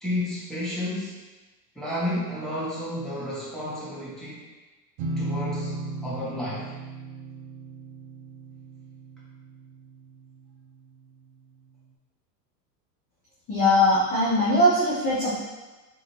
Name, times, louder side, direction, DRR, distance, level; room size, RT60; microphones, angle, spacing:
voice 1, 0.0-1.2 1.7-4.4 5.2-5.7 6.0-6.7, left 1 dB, ahead, -9 dB, 1.1 m, -31 dB
sound 1, 5.0-10.6, right 2 dB, 55° right, 0.7 m, -36 dB
voice 2, 13.5-15.4, left 1 dB, 15° left, -9 dB, 0.4 m, -21 dB
4.0 x 2.9 x 3.1 m, 1.2 s
supercardioid pair, 135°, 50 cm